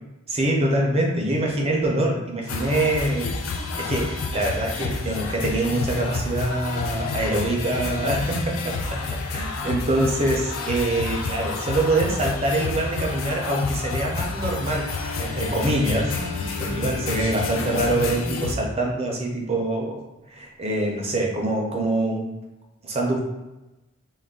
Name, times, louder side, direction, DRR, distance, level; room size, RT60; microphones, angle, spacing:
voice 1, 0.3-3.3 3.8-16.2 16.6-20.0 20.3-22.3 22.8-23.2, right 1 dB, 30° right, 0 dB, 0.4 m, -24 dB
sound 1, 2.5-18.5, left 4 dB, 70° left, 0.4 m, -30 dB
Bowed string instrument, 14.7-19.6, left 3 dB, 45° left, 0.8 m, -38 dB
2.3 x 2.0 x 3.5 m, 1.0 s
head